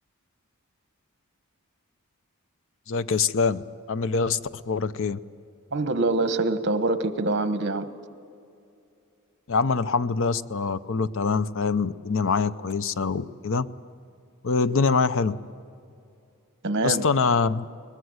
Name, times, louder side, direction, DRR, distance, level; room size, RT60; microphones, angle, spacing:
voice 1, 2.9-5.2 9.5-13.7 14.4-15.4 16.8-17.7, left 4 dB, 60° left, 14 dB, 0.6 m, -24 dB
voice 2, 5.7-7.9 16.6-17.0, right 2 dB, 55° right, 10 dB, 1.3 m, -25 dB
22.5 x 20.5 x 7.9 m, 2.5 s
head